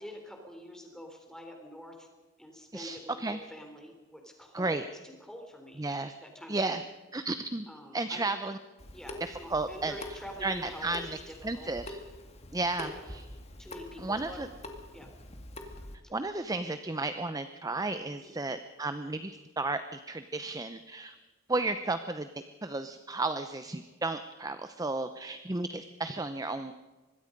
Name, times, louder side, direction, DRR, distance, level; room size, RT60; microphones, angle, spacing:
voice 1, 0.0-2.1 2.4-5.8 6.2-6.8 7.7-8.3 8.9-11.7 12.8-13.1 13.6-14.5 14.9-15.1 18.1-18.4, equal, 5° left, 3 dB, 3.8 m, -46 dB
voice 2, 2.7-3.4 4.5-4.8 5.8-6.1 6.5-6.8 7.1-7.7 7.9-8.6 9.2-9.9 10.4-11.1 11.4-12.0 12.5-13.2 14.0-14.5 16.1-21.1 21.5-22.3 22.6-26.7, right 2 dB, 15° right, 10 dB, 0.7 m, -33 dB
Water tap faucet / Sink (filling or washing) / Drip, 8.8-16.0, left 1 dB, 30° left, 2.1 m, -45 dB
25.0 x 21.0 x 5.3 m, 1.2 s
head